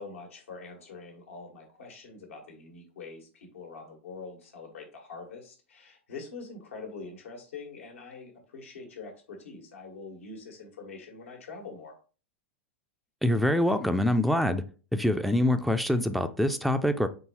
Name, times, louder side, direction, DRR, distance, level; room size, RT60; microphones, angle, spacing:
voice 1, 0.0-11.9, left 4 dB, 75° left, 1.4 m, -44 dB
voice 2, 13.2-14.6 14.9-17.1, left 1 dB, ahead, 0.3 m, -25 dB
3.9 x 3.8 x 2.8 m
hypercardioid pair, 100°, 7 cm